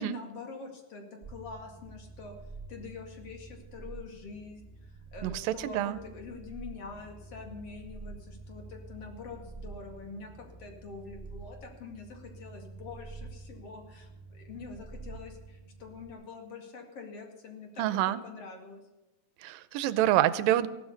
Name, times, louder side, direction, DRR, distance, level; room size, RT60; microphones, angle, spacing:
voice 1, 0.0-2.3 2.7-17.9 18.2-18.8, left 4 dB, 45° left, 3 dB, 2.9 m, -45 dB
sound 1, 1.2-16.1, right 3 dB, 50° right, 0.6 m, -47 dB
voice 2, 5.2-6.0 17.8-18.2 19.4-20.7, right 13 dB, 85° right, 14 dB, 2.3 m, -27 dB
16.0 x 12.5 x 5.2 m, 1.1 s
omnidirectional pair, 4.1 m